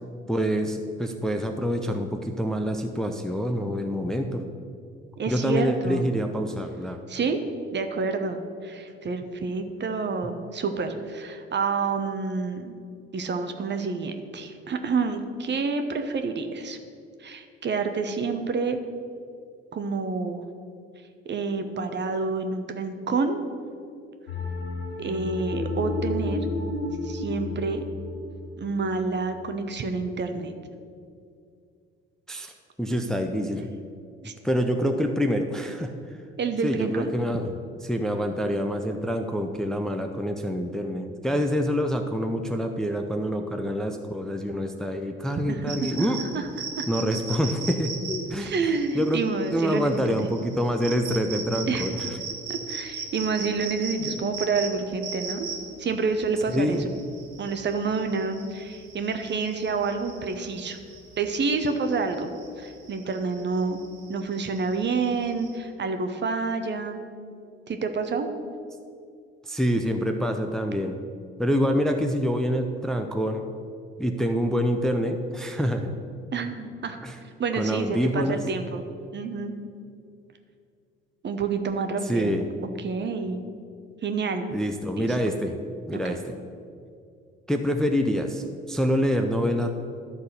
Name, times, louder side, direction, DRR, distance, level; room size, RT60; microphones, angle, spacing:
voice 1, 0.3-4.4 5.3-7.0 32.3-32.5 32.8-33.6 34.4-35.9 36.6-37.5 37.8-46.2 46.9-48.5 48.9-49.2 49.5-52.0 54.0-54.1 56.5-56.9 69.4-70.9 71.4-73.4 74.0-75.9 77.0-77.2 77.6-78.4 82.1-82.4 84.5-85.6 85.9-86.2 87.5-89.7, equal, ahead, 4 dB, 0.6 m, -26 dB
voice 2, 5.2-6.1 7.1-7.4 7.7-12.7 13.1-16.8 17.2-18.8 19.7-20.4 21.2-23.4 25.0-26.5 27.0-27.8 28.6-30.5 34.2-34.3 36.4-37.1 45.5-46.9 48.4-50.3 51.7-51.9 52.5-55.5 55.8-56.9 57.4-60.8 61.2-62.3 62.6-63.8 64.1-67.0 67.7-68.3 76.3-78.8 79.1-79.5 81.2-82.3 82.8-83.4 84.0-84.4 85.0-85.1 85.9-86.2, right 4 dB, 35° right, 7 dB, 0.9 m, -28 dB
sound 1, 24.3-29.5, left 2 dB, 90° left, 1.0 m, -32 dB
sound 2, 45.7-65.6, right 5 dB, 70° right, 1.3 m, -38 dB
11.5 x 4.0 x 6.6 m, 2.4 s
figure-of-eight pair, 50°, 31 cm